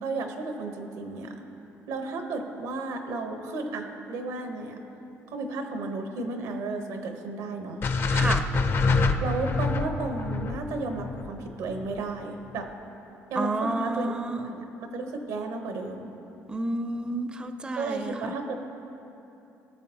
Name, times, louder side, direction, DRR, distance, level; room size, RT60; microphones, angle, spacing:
voice 1, 0.0-1.5 1.9-4.8 5.3-7.8 9.2-12.7 13.3-14.2 14.4-14.7 14.9-16.1 17.7-18.5, right 3 dB, 90° right, 5 dB, 1.0 m, -33 dB
sound 1, 7.8-12.0, left 3 dB, 45° left, 0.5 m, -26 dB
voice 2, 8.1-8.5 13.4-14.5 16.5-18.1, right 2 dB, 15° right, 9 dB, 0.4 m, -30 dB
17.0 x 6.9 x 2.9 m, 2.9 s
cardioid pair, 105°, 6 cm